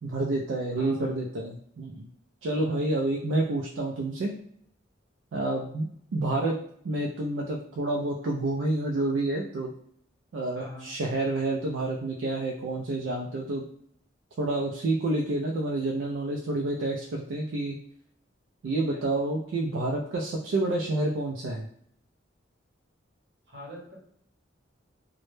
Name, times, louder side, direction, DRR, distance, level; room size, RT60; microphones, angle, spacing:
voice 1, 0.0-2.1 2.4-4.3 5.3-6.6 6.8-9.7 10.3-13.6 14.4-17.8 18.6-21.7, right 2 dB, 75° right, -1 dB, 0.3 m, -29 dB
voice 2, 0.8-1.3 2.5-2.8 10.6-10.9 18.7-19.0 23.5-24.0, equal, 60° right, -3 dB, 0.8 m, -43 dB
2.1 x 2.0 x 3.0 m, 0.65 s
head